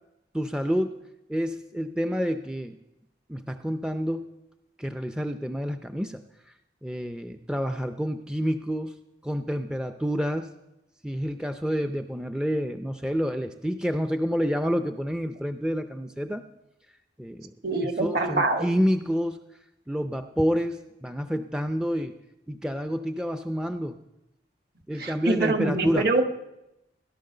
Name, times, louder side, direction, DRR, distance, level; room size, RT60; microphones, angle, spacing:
voice 1, 0.3-1.0 1.3-2.8 3.3-4.3 4.8-6.2 6.8-8.9 9.2-10.5 11.0-16.4 17.2-17.5 18.0-19.4 19.9-22.2 22.5-24.0 24.9-26.1, equal, 5° right, 8 dB, 0.5 m, -28 dB
voice 2, 17.6-18.6 25.0-26.2, right 3 dB, 55° right, 6 dB, 1.6 m, -25 dB
17.0 x 11.5 x 6.7 m, 0.91 s
head